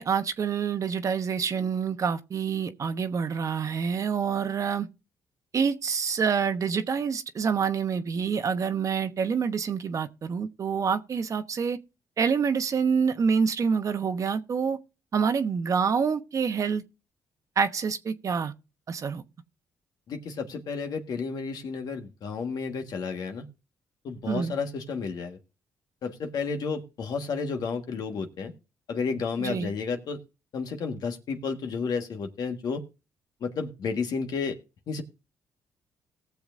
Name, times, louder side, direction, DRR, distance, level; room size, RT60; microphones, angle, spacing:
voice 1, 0.0-4.9 5.5-11.8 12.2-14.8 15.1-16.8 17.6-18.5 18.9-19.2 24.3-24.5 29.4-29.7, right 6 dB, 50° right, 1.0 m, -27 dB
voice 2, 20.1-23.4 24.0-25.4 26.0-28.5 28.9-30.2 30.5-32.8 33.4-34.6 34.9-35.0, left 5 dB, 65° left, 1.5 m, -31 dB
18.5 x 7.0 x 2.6 m
cardioid pair, 85°, 7 cm